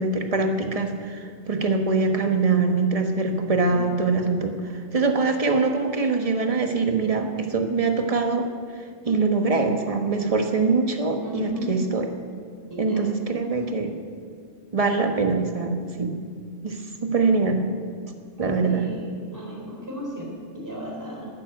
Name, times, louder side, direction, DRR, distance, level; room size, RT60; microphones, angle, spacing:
voice 1, 0.0-8.5 8.8-12.1 12.8-14.0 14.7-16.2 16.6-17.6 18.4-18.9, right 4 dB, 35° right, 5 dB, 1.3 m, -23 dB
voice 2, 11.2-11.8 12.7-13.1 18.6-21.3, equal, 15° right, -3 dB, 3.8 m, -35 dB
12.5 x 9.9 x 9.4 m, 2.1 s
omnidirectional pair, 1.1 m